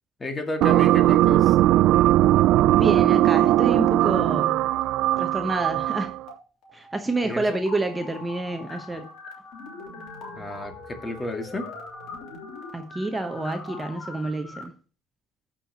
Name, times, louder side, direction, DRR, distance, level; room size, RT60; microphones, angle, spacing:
voice 1, 0.2-1.6 7.2-7.6 10.4-11.7, left 2 dB, 25° left, 2.1 m, -32 dB
sound 1, 0.6-6.2, right 14 dB, 70° right, 0.3 m, -19 dB
voice 2, 2.7-4.7 5.2-6.2 6.7-9.1 12.7-14.7, right 2 dB, 15° right, 1.0 m, -28 dB
sound 2, 5.4-6.4 6.6-14.6, left 3 dB, 65° left, 3.2 m, -42 dB
15.5 x 5.8 x 3.0 m
supercardioid pair, 95°, 0 cm